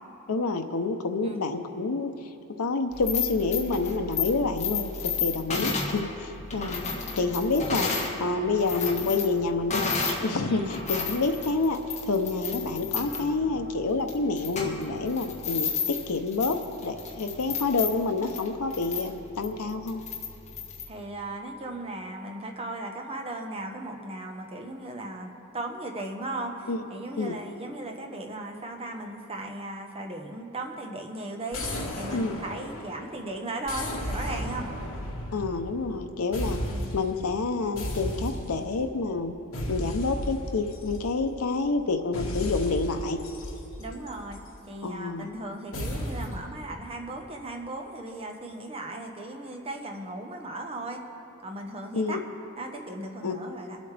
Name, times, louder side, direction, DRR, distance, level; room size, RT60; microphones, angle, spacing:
voice 1, 0.3-2.1 2.6-6.8 7.2-7.9 8.2-9.8 10.2-20.0 26.7-26.8 27.2-27.4 32.1-32.4 35.3-36.6 36.9-39.3 39.7-43.2 44.8-45.3 51.9-52.2 53.2-53.3, left 3 dB, 90° left, 5 dB, 0.7 m, -28 dB
sound 1, 2.9-8.2 8.5-10.3 10.6-20.9, left 5 dB, 30° left, 1.5 m, -32 dB
voice 2, 5.5-5.9 10.5-10.8 20.9-31.6 32.0-34.7 36.6-36.9 43.8-44.4 44.7-51.0 51.4-52.2 52.6-53.8, right 2 dB, 25° right, 2 dB, 1.1 m, -37 dB
sound 2, 31.5-33.1 33.7-36.0 36.3-37.2 37.8-38.8 39.5-41.4 42.1-44.5 45.7-46.5, equal, 65° left, 1.8 m, -34 dB
23.5 x 8.2 x 3.4 m, 3.0 s
head